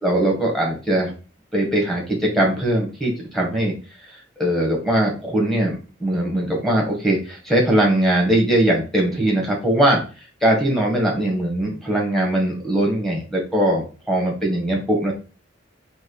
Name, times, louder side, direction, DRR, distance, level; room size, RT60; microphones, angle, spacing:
voice 1, 0.0-1.1 1.5-3.7 4.1-10.0 10.4-15.1, right 1 dB, ahead, -2 dB, 1.4 m, -20 dB
3.5 x 2.9 x 4.6 m, 0.34 s
head